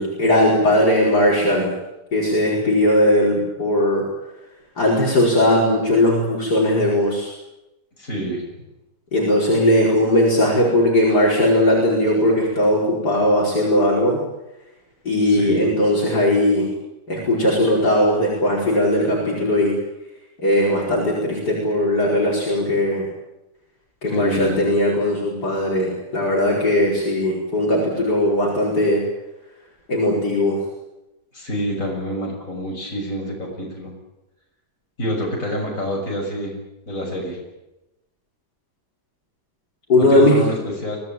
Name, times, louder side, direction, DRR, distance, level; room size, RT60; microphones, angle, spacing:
voice 1, 0.0-1.7 2.1-4.0 4.8-7.3 9.1-14.2 15.1-16.7 17.1-19.7 20.4-23.1 24.0-29.0 29.9-30.6 39.9-40.4, left 1 dB, 70° left, -3 dB, 5.6 m, -18 dB
voice 2, 8.0-8.5 15.2-15.7 24.1-24.7 31.3-33.9 35.0-36.6 36.9-37.4 40.0-41.0, equal, 50° left, -1 dB, 7.4 m, -27 dB
24.0 x 17.5 x 9.2 m, 0.95 s
omnidirectional pair, 1.8 m